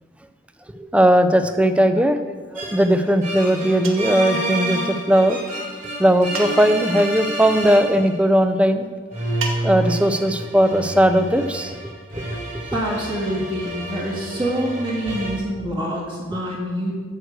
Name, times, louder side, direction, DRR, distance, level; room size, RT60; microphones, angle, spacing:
voice 1, 0.7-2.2 2.5-5.4 6.0-8.8 9.6-11.7, equal, 5° right, 9 dB, 0.5 m, -18 dB
sound 1, 2.6-8.2 9.1-15.4, right 1 dB, 40° right, 3.7 m, -29 dB
sound 2, 3.8-4.2 6.3-6.9 9.4-10.0, right 4 dB, 75° right, 1.2 m, -32 dB
voice 2, 12.7-16.9, equal, 25° right, -5 dB, 1.7 m, -26 dB
9.3 x 6.4 x 7.7 m, 1.5 s
head